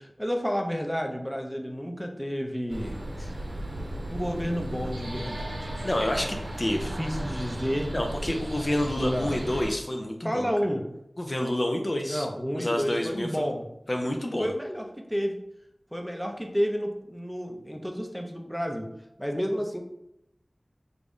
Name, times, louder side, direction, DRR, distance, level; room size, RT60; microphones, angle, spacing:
voice 1, 0.0-3.0 4.1-5.7 7.0-7.9 9.0-9.4 10.2-10.8 12.1-13.6 14.4-15.4 15.9-18.9 19.2-19.8, equal, ahead, 2 dB, 0.6 m, -30 dB
sound 1, 2.7-9.7, right 1 dB, 65° right, 0.7 m, -35 dB
voice 2, 5.8-7.0 7.9-10.5 11.2-12.3 12.5-13.5 13.9-14.5, left 1 dB, 45° left, 3 dB, 0.5 m, -28 dB
3.4 x 2.6 x 3.5 m, 0.81 s
wide cardioid pair, 50°, 0 cm